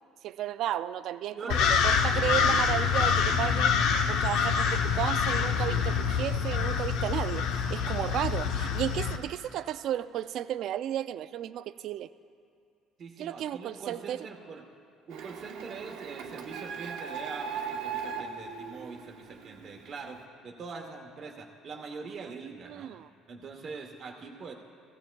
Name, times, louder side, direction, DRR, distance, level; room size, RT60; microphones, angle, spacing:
voice 1, 0.2-3.7 4.1-12.1 13.2-14.3 22.7-23.1, right 11 dB, 50° right, 14 dB, 0.3 m, -33 dB
voice 2, 1.3-1.7 8.4-8.5 13.0-14.6 15.1-22.9 23.3-24.5, right 4 dB, 35° right, 0 dB, 0.9 m, -43 dB
sound 1, 1.5-9.2, left 6 dB, 65° left, 0.7 m, -26 dB
Printer, 15.1-19.7, right 6 dB, 70° right, 0.8 m, -38 dB
16.5 x 16.5 x 2.3 m, 2.3 s
cardioid pair, 165°, 0 cm